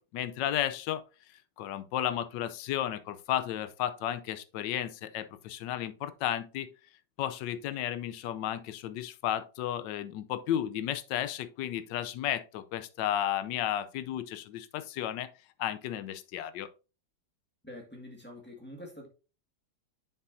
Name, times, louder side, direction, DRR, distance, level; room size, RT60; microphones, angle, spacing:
voice 1, 0.1-1.0 1.6-6.7 7.2-15.3 15.6-16.7, left 11 dB, 80° left, 1.2 m, -33 dB
voice 2, 17.6-19.1, left 1 dB, 5° left, 1.5 m, -46 dB
6.9 x 6.6 x 2.6 m
omnidirectional pair, 2.0 m